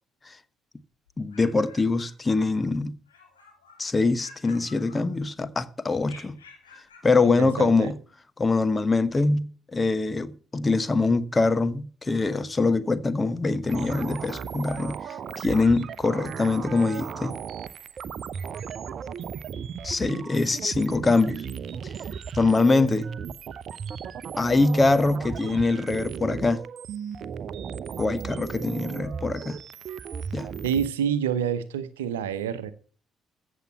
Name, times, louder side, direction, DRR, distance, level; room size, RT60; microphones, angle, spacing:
sound 1, 1.1-2.7 3.1-3.9 4.2-5.4 6.0-7.1, left 4 dB, 80° left, 3.0 m, -52 dB
voice 1, 1.2-3.0 3.8-6.4 7.0-8.0 8.4-15.0 15.4-17.3 19.8-21.4 22.3-23.1 24.4-26.6 28.0-29.6 30.3-30.5, left 3 dB, 25° left, 1.1 m, -23 dB
voice 2, 7.2-7.9 30.6-32.7, right 8 dB, 75° right, 0.9 m, -28 dB
sound 2, 13.7-30.9, right 7 dB, 50° right, 0.7 m, -36 dB
15.0 x 7.4 x 5.9 m
figure-of-eight pair, 45°, 0 cm